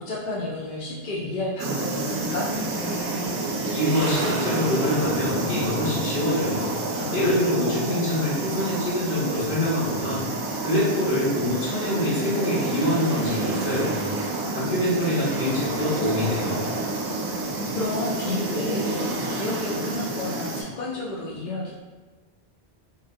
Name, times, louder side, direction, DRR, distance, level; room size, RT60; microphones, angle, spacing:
voice 1, 0.0-2.5 6.9-8.1 17.7-21.7, left 2 dB, 55° left, -5 dB, 0.7 m, -31 dB
sound 1, 1.6-20.6, right 2 dB, 75° right, 0.8 m, -29 dB
voice 2, 3.6-6.7 7.1-10.2 10.6-14.0 14.5-16.6, left 1 dB, 75° left, -10 dB, 1.7 m, -25 dB
3.7 x 2.2 x 2.6 m, 1.3 s
omnidirectional pair, 1.0 m